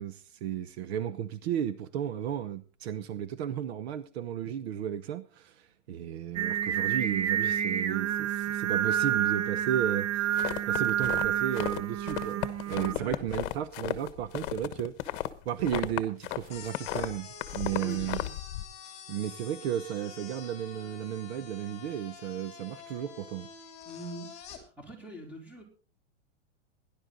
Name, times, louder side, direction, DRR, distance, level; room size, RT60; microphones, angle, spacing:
voice 1, 0.0-15.1 15.4-18.2 19.1-23.5, right 10 dB, 60° right, 1.0 m, -34 dB
Singing, 6.4-12.9, right 10 dB, 20° right, 0.5 m, -29 dB
sound 1, 10.3-11.8 12.1-16.4 16.7-18.6, left 15 dB, 45° left, 1.2 m, -34 dB
voice 2, 12.9-13.2 17.7-18.3 23.9-25.6, equal, 5° right, 3.5 m, -43 dB
sound 2, 16.5-24.6, left 7 dB, 20° left, 2.8 m, -47 dB
17.5 x 11.0 x 3.9 m
supercardioid pair, 160°, 36 cm